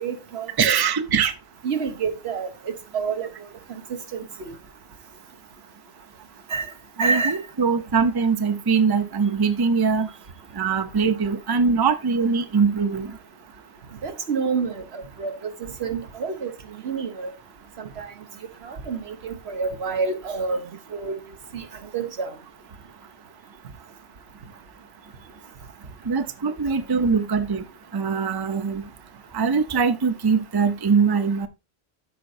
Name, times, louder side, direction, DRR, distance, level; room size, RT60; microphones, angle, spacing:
voice 1, 0.0-0.7 1.6-3.3 3.9-4.5 6.5-6.7 7.0-7.4 14.0-16.5 16.8-17.3 17.8-18.1 18.6-20.6 20.9-21.2 21.5-21.6 21.9-22.3, right 5 dB, 75° right, 1.3 m, -28 dB
voice 2, 0.6-1.3 7.0-10.1 10.6-13.1 26.1-27.6 27.9-28.8 29.3-31.5, right 5 dB, 25° right, 0.6 m, -22 dB
13.5 x 5.2 x 2.5 m
omnidirectional pair, 1.1 m